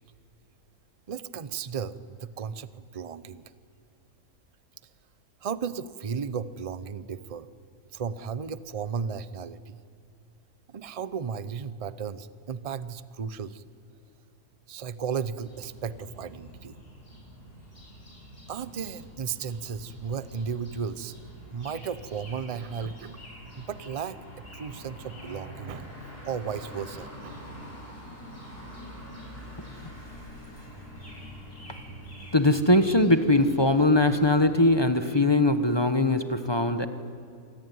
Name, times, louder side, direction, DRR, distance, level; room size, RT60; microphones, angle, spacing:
voice 1, 1.1-3.5 5.4-7.5 7.9-9.8 10.7-13.6 14.7-16.8 18.5-21.1 21.5-23.2 23.6-24.2 24.5-25.9 26.2-27.4, right 6 dB, 40° right, 14 dB, 0.5 m, -34 dB
sound 1, 15.4-34.7, equal, 35° left, 7.9 m, -45 dB
voice 2, 32.3-36.9, left 2 dB, 20° left, 8 dB, 0.9 m, -21 dB
27.0 x 21.0 x 9.5 m, 2.4 s
omnidirectional pair, 1.7 m